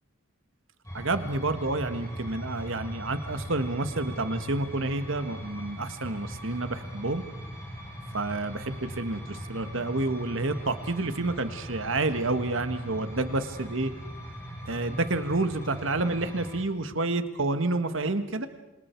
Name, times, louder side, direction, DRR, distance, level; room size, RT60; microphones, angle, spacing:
sound 1, 0.8-16.6, equal, 15° left, 6.9 m, -40 dB
voice 1, 0.9-7.2 8.1-13.9 14.6-18.5, right 2 dB, 65° right, 9 dB, 1.6 m, -29 dB
27.5 x 27.5 x 4.6 m, 0.97 s
head